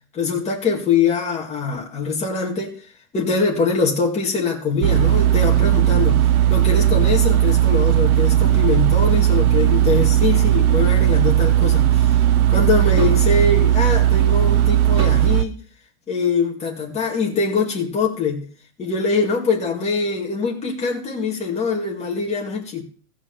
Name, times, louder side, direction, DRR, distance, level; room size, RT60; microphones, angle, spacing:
voice 1, 0.1-2.7 3.1-12.1 12.5-15.5 16.1-18.4 18.8-22.8, left 4 dB, 15° left, 2.4 m, -23 dB
sound 1, 4.8-15.5, right 12 dB, 65° right, 1.1 m, -16 dB
sound 2, 13.0-13.3 15.0-15.3 16.3-16.5, right 3 dB, 10° right, 2.9 m, -31 dB
15.0 x 5.0 x 7.3 m
supercardioid pair, 165°, 46 cm